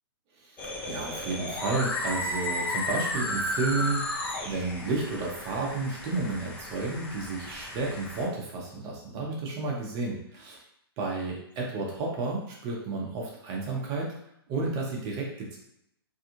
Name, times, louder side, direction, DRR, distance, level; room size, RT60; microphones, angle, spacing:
voice 1, 0.4-4.1 4.4-10.6 11.0-14.1 14.5-15.6, right 3 dB, 25° right, -3 dB, 0.8 m, -32 dB
sound 1, 0.6-8.2, left 1 dB, 10° left, 0.4 m, -34 dB
2.6 x 2.3 x 2.9 m, 0.77 s
hypercardioid pair, 140°, 13 cm